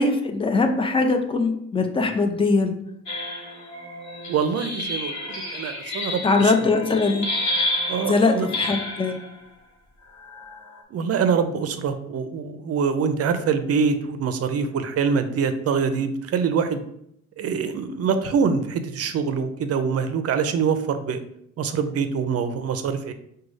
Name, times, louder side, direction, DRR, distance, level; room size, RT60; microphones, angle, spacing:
voice 1, 0.0-2.8 6.2-7.3 8.1-9.2, left 3 dB, 20° left, 5 dB, 0.5 m, -21 dB
sound 1, 3.1-9.3 10.2-10.8, left 1 dB, 70° left, 1.0 m, -30 dB
voice 2, 4.3-6.5 7.9-8.5 10.9-16.8 17.4-21.2 21.6-23.1, right 6 dB, 55° right, 9 dB, 0.5 m, -24 dB
5.0 x 2.3 x 3.1 m, 0.74 s
cardioid pair, 90°, 30 cm